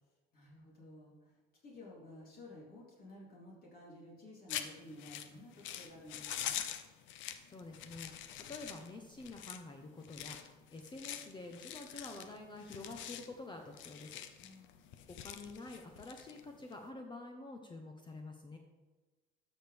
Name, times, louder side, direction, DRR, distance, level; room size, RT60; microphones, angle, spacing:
voice 1, 0.3-1.4 1.6-6.6 14.4-14.9, left 1 dB, 45° left, -4 dB, 3.3 m, -53 dB
sound 1, 4.5-16.8, left 11 dB, 70° left, 0.7 m, -45 dB
voice 2, 7.2-14.2 15.1-18.6, left 2 dB, 20° left, 3 dB, 0.9 m, -48 dB
12.5 x 6.4 x 3.4 m, 1.2 s
supercardioid pair, 105°, 21 cm